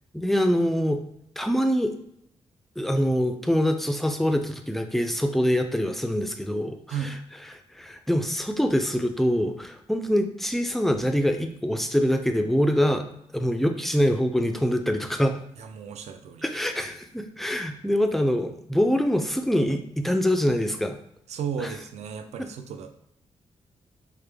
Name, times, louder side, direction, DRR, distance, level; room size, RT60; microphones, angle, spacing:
voice 1, 0.1-1.0 1.4-1.9 2.8-6.8 7.5-13.1 13.3-15.4 16.4-21.0 21.6-21.7 22.4-22.5, equal, ahead, 6 dB, 0.3 m, -24 dB
voice 2, 15.6-16.5 21.3-22.9, right 7 dB, 75° right, 7 dB, 0.4 m, -34 dB
4.8 x 2.1 x 3.3 m, 0.75 s
wide cardioid pair, 150°, 12 cm